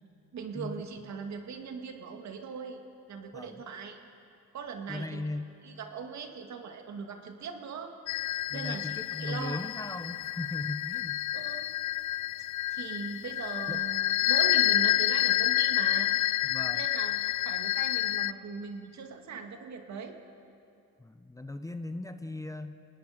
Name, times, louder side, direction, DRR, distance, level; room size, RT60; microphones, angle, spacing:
voice 1, 0.3-2.8 3.1-4.0 4.5-5.3 5.6-7.9 8.5-9.6 11.3-11.7 12.7-16.1 16.7-20.2, right 5 dB, 65° right, 5 dB, 2.1 m, -40 dB
voice 2, 4.9-5.5 8.5-11.2 13.7-13.9 16.4-16.9 21.0-22.7, left 2 dB, 10° left, 9 dB, 0.9 m, -38 dB
sound 1, 8.1-18.3, left 15 dB, 70° left, 0.5 m, -29 dB
26.5 x 19.5 x 5.1 m, 2.5 s
cardioid pair, 90°, 30 cm